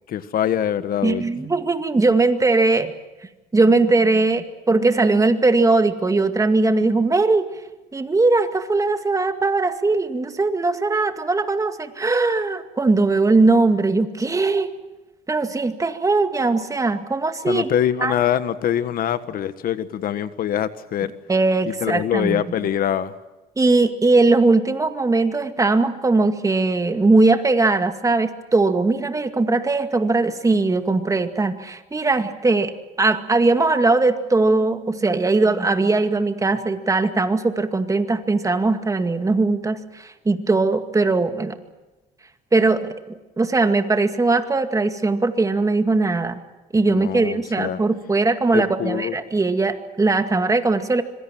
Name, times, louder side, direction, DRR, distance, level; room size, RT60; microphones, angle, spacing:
voice 1, 0.1-1.2 17.4-21.1 21.6-23.1 46.9-47.8 48.5-49.2, left 10 dB, 60° left, 13 dB, 1.5 m, -24 dB
voice 2, 1.0-2.9 3.5-7.5 7.9-14.7 15.3-17.7 18.0-18.1 21.3-22.4 23.6-32.7 33.0-41.6 42.5-46.4 46.7-51.0, right 3 dB, 20° right, 8 dB, 2.1 m, -20 dB
25.5 x 23.5 x 7.6 m, 1.1 s
cardioid pair, 110°, 17 cm